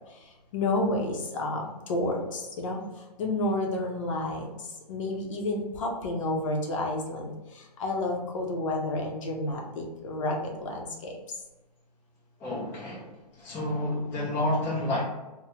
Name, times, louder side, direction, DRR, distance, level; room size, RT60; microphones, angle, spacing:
voice 1, 0.5-2.8 3.2-4.5 4.9-11.1, left 2 dB, 50° left, 1 dB, 0.6 m, -30 dB
voice 2, 12.4-13.1 13.4-15.0, left 1 dB, 10° left, -6 dB, 0.4 m, -29 dB
3.3 x 2.1 x 2.8 m, 1.1 s
hypercardioid pair, 155°, 21 cm